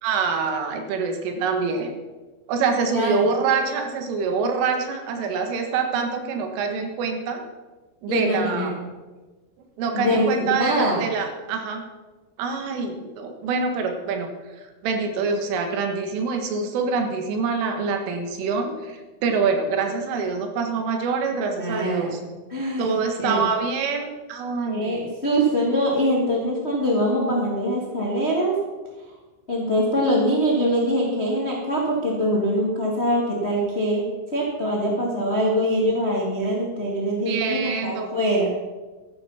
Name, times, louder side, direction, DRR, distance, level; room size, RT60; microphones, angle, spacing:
voice 1, 0.0-1.9 2.5-7.4 8.0-8.8 9.8-11.9 12.4-14.3 14.8-22.2 22.8-25.0 37.3-38.1, right 5 dB, 80° right, 5 dB, 4.0 m, -25 dB
voice 2, 2.9-3.2 8.1-8.7 9.9-11.0 21.4-22.2 22.5-23.0 23.2-23.4 24.7-28.6 29.5-38.5, equal, 65° left, -3 dB, 0.6 m, -23 dB
13.0 x 11.5 x 5.8 m, 1.3 s
omnidirectional pair, 5.8 m